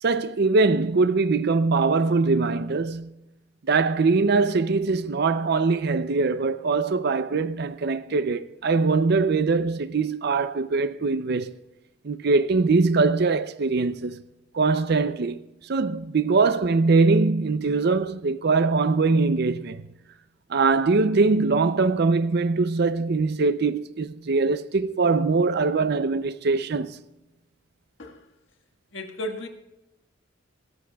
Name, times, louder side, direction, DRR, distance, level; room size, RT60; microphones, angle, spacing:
voice 1, 0.0-3.1 3.7-11.6 12.0-14.2 14.5-19.8 20.5-27.0, right 4 dB, 55° right, 0.5 m, -22 dB
voice 2, 28.9-29.5, left 1 dB, 70° left, 1.6 m, -34 dB
24.5 x 13.5 x 2.3 m
head